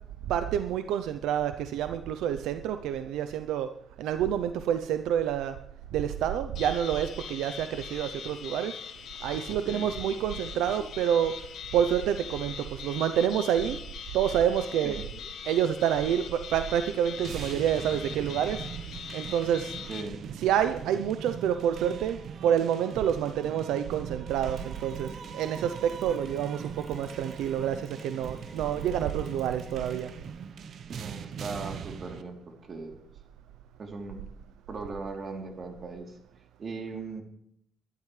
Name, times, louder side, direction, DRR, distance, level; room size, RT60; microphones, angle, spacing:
voice 1, 0.3-3.7 4.0-5.6 5.9-8.7 9.2-11.3 11.7-13.8 14.1-15.0 15.5-18.7 19.1-19.8 20.3-30.1, right 9 dB, 90° right, 9 dB, 0.6 m, -28 dB
sound 1, 6.5-20.0, left 7 dB, 75° left, 1.4 m, -42 dB
voice 2, 9.5-9.9 14.8-15.0 19.9-20.3 30.9-33.0 33.8-34.2 34.7-36.2 36.6-37.2, right 4 dB, 45° right, 2 dB, 3.3 m, -39 dB
sound 2, 17.2-32.2, right 7 dB, 65° right, 1.0 m, -41 dB
Mechanisms, 24.3-30.5, right 1 dB, 30° right, 4.3 m, -50 dB
23.0 x 12.0 x 3.3 m, 0.72 s
cardioid pair, 90°, 0 cm